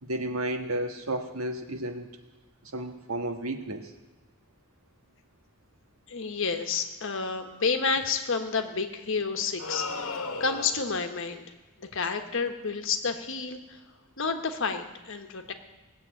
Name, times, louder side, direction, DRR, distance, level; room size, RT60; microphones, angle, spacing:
voice 1, 0.0-2.1 2.7-3.9, right 1 dB, 90° right, 5 dB, 1.6 m, -32 dB
voice 2, 6.1-11.4 11.8-13.8 14.2-15.5, left 5 dB, 65° left, 6 dB, 1.4 m, -30 dB
sound 1, 9.6-11.0, left 3 dB, 90° left, 1.2 m, -35 dB
18.0 x 7.7 x 9.0 m, 1.1 s
head